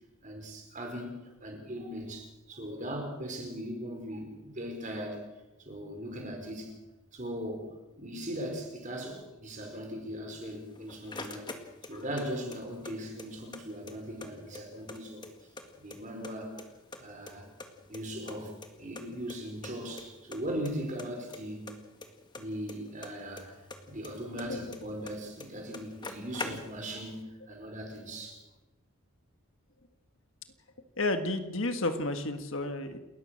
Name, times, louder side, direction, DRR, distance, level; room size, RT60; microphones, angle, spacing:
voice 1, 0.2-5.2 5.6-6.8 7.1-11.5 11.8-15.3 15.8-16.6 17.0-17.5 17.9-21.8 22.4-28.4, equal, 35° right, 2 dB, 5.0 m, -39 dB
sound 1, 10.5-12.2 12.5-13.6 13.9-14.0 14.2-15.6 15.9-16.6 16.9-18.4 18.6-18.7 19.0-19.1 19.3-19.4 19.6-20.0 20.3-20.7 21.0-23.4 23.7-25.1 25.4-25.5 25.7-27.0, left 3 dB, 20° left, 1.9 m, -42 dB
voice 2, 31.0-33.0, left 2 dB, 60° left, 8 dB, 1.7 m, -31 dB
29.0 x 14.0 x 6.5 m, 0.99 s
head